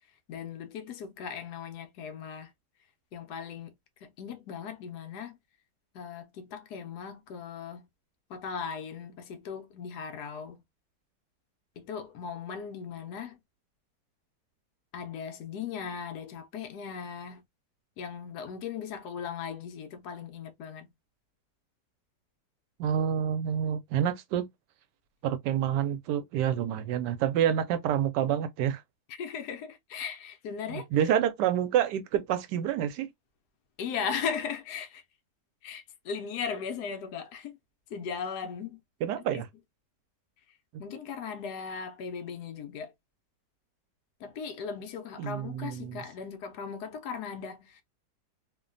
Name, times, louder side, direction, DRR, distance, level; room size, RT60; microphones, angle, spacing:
voice 1, 0.3-2.5 3.1-3.7 4.0-5.4 5.9-7.9 8.3-10.6 11.8-13.4 14.9-17.4 18.0-20.9 29.1-30.9 33.8-35.0 35.6-37.6 37.9-38.8 39.1-39.4 40.8-42.9 44.2-47.8, left 6 dB, 75° left, 1.1 m, -38 dB
voice 2, 22.8-24.5 25.2-28.8 30.7-33.1 39.0-39.5 40.7-40.8 45.2-46.0, right 9 dB, 85° right, 1.2 m, -28 dB
3.0 x 2.2 x 2.4 m
omnidirectional pair, 1.8 m